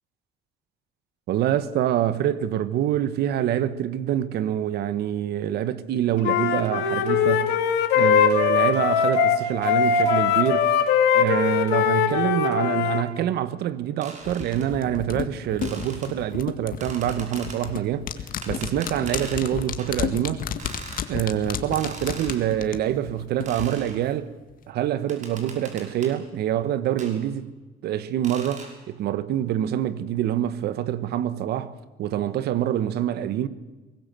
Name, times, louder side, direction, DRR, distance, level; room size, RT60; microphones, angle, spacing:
voice 1, 1.3-7.6 7.9-10.7 11.1-18.1 18.5-20.4 21.1-24.3 24.7-27.5 27.8-33.5, right 11 dB, 75° right, 1.3 m, -26 dB
Wind instrument woodwind instrument, 6.2-13.0, left 7 dB, 85° left, 2.6 m, -21 dB
sound 1, 14.0-14.7 15.6-16.1 16.8-17.6 18.4-19.5 19.8-20.0 20.6-21.1 21.7-22.4 23.5-24.0 25.1-26.2 27.0-27.2 28.2-28.7, right 4 dB, 45° right, 5.6 m, -41 dB
sound 2, 14.2-23.7 24.0-24.1, left 8 dB, 55° left, 1.9 m, -32 dB
23.0 x 19.5 x 7.6 m
cardioid pair, 110°, 17 cm